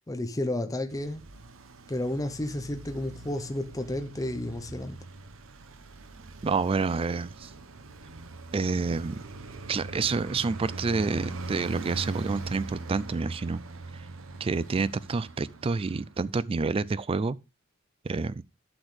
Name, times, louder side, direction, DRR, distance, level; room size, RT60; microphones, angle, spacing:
voice 1, 0.1-1.2 1.9-5.0, left 1 dB, 15° left, 0.7 m, -32 dB
Traffic noise roadway noise, 0.9-16.4, right 3 dB, 80° right, 0.9 m, -41 dB
voice 2, 6.4-7.5 8.5-9.2 9.7-13.6 14.4-17.4 18.0-18.4, right 4 dB, 25° right, 0.3 m, -28 dB
11.5 x 6.2 x 3.2 m
head